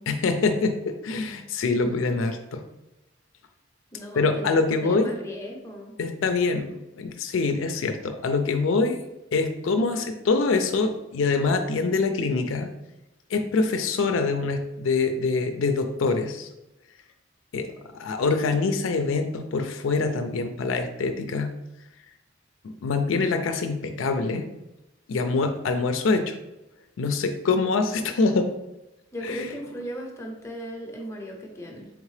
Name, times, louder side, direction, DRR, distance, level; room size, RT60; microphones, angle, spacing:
voice 1, 0.1-2.6 4.1-5.1 6.0-9.0 9.3-12.7 13.3-16.5 17.5-17.7 17.9-21.5 22.6-24.5 25.1-26.4 27.0-28.5 29.2-29.5, left 4 dB, 75° left, 6 dB, 0.4 m, -25 dB
voice 2, 3.9-6.0 29.1-31.9, equal, 15° left, 0 dB, 0.7 m, -37 dB
3.6 x 3.5 x 3.2 m, 0.94 s
head